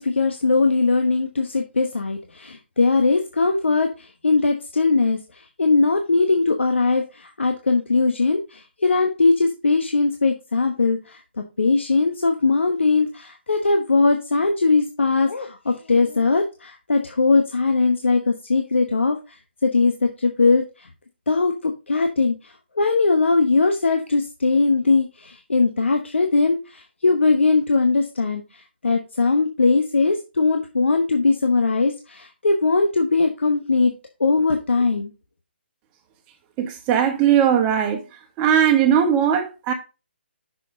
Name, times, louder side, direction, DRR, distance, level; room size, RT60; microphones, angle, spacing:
voice 1, 0.0-19.4 19.6-20.9 21.3-33.9 34.2-35.1, left 3 dB, 90° left, 1.0 m, -20 dB
voice 2, 36.6-38.0 38.4-39.7, right 9 dB, 20° right, 1.3 m, -19 dB
6.3 x 5.4 x 3.8 m
hypercardioid pair, 155°, 6 cm